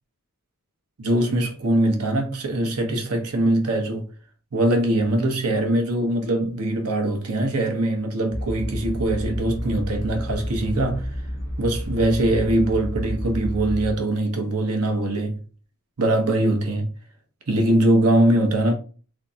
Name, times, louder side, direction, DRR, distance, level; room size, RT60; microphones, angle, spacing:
voice 1, 1.0-4.1 4.5-11.1 11.6-15.4 16.0-16.9 17.5-18.7, right 1 dB, 85° right, 1.0 m, -22 dB
sound 1, 8.3-13.9, equal, 40° left, 1.1 m, -30 dB
3.6 x 3.3 x 2.8 m
head